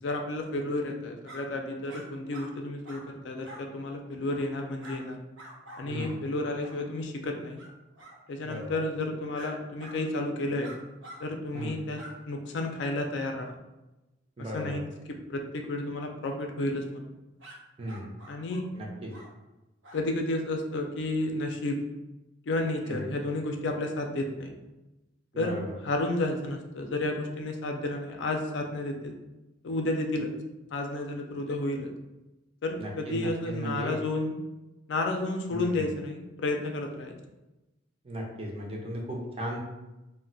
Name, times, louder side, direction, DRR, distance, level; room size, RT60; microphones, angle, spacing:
voice 1, 0.0-5.2 5.8-7.6 8.3-10.7 11.2-13.6 14.5-14.8 15.1-17.1 18.3-18.8 19.9-21.8 22.5-24.5 25.4-29.1 29.6-30.3 30.7-31.9 32.6-34.4 34.9-37.2, left 2 dB, 65° left, 3 dB, 0.4 m, -31 dB
sound 1, 1.2-1.4 1.9-2.0 2.3-2.5 2.8-3.0 3.4-3.6 4.3-4.5 4.8-5.0 5.4-6.1 6.6-6.8 7.6-7.7 8.0-8.2 9.3-9.5 9.8-10.0 10.6-11.2 11.5-11.7 11.9-12.1 17.4-17.6 17.9-18.6 19.1-19.3 19.8-20.0, equal, 75° right, 0.6 m, -47 dB
voice 2, 5.9-6.2 8.4-8.8 11.5-11.9 14.4-14.8 17.8-18.1 18.8-19.1 22.9-23.1 25.3-25.8 32.8-34.0 35.5-35.9 38.0-39.6, equal, 30° right, -1 dB, 0.5 m, -36 dB
2.2 x 2.1 x 3.8 m, 1.0 s
head